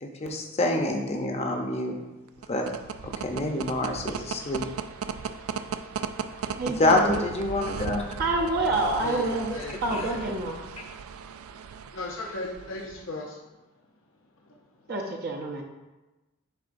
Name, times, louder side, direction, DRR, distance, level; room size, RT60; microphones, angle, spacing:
voice 1, 0.0-1.9 2.5-2.7 3.0-4.7 6.8-8.0 9.9-10.0, left 2 dB, 30° left, 2 dB, 0.7 m, -26 dB
sound 1, 2.3-13.1, right 6 dB, 90° right, 0.4 m, -37 dB
voice 2, 6.5-7.2 8.2-9.5 9.8-10.6 14.9-15.6, right 2 dB, 45° right, 0 dB, 0.6 m, -27 dB
voice 3, 9.0-10.4 11.9-13.4 14.4-14.9, left 2 dB, 70° left, -1 dB, 0.7 m, -37 dB
10.5 x 3.9 x 2.6 m, 1.1 s
head